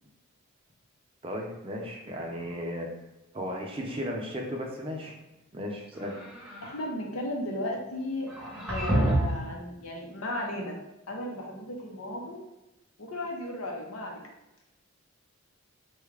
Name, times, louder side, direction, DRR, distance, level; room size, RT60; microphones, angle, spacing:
voice 1, 1.2-2.9 3.3-5.1 5.5-6.2, equal, 25° right, 1 dB, 0.5 m, -35 dB
sound 1, 5.9-6.8 8.3-9.5, right 1 dB, ahead, 0.7 m, -28 dB
voice 2, 6.6-8.3 8.7-10.8 11.1-12.4 13.0-14.3, left 1 dB, 80° left, 1 dB, 0.8 m, -35 dB
3.7 x 2.4 x 3.2 m, 0.96 s
head